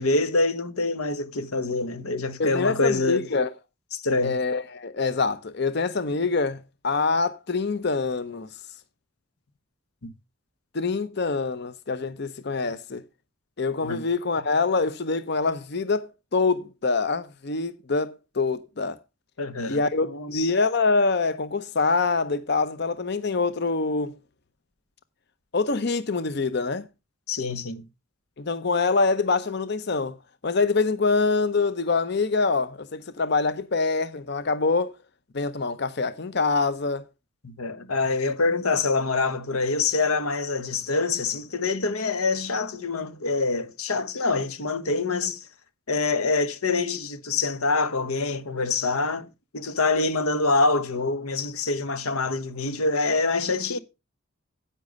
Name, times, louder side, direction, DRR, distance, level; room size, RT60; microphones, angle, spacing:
voice 1, 0.0-3.2 3.9-4.4 10.0-10.1 13.8-14.0 19.4-20.5 27.3-27.8 37.4-45.5 45.9-49.3 49.5-53.8, left 3 dB, 90° left, 1.2 m, -25 dB
voice 2, 2.4-3.5 4.2-6.6 6.8-8.5 10.7-13.0 13.6-19.0 19.7-24.2 25.5-26.9 28.4-30.2 30.4-34.9 35.3-37.0, left 4 dB, 50° left, 0.7 m, -25 dB
10.0 x 8.6 x 5.2 m
head